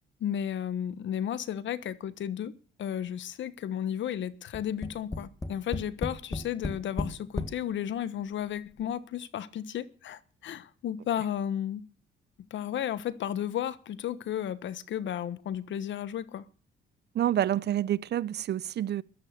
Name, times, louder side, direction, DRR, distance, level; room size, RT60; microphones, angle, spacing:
voice 1, 0.2-2.5 2.8-11.8 12.5-16.5, left 10 dB, 70° left, 1.2 m, -33 dB
Tap, 4.5-7.6 8.4-8.5 8.8-8.9, left 2 dB, 20° left, 1.9 m, -34 dB
voice 2, 17.1-19.0, right 11 dB, 60° right, 0.7 m, -28 dB
14.5 x 11.5 x 6.7 m
cardioid pair, 90°, 20 cm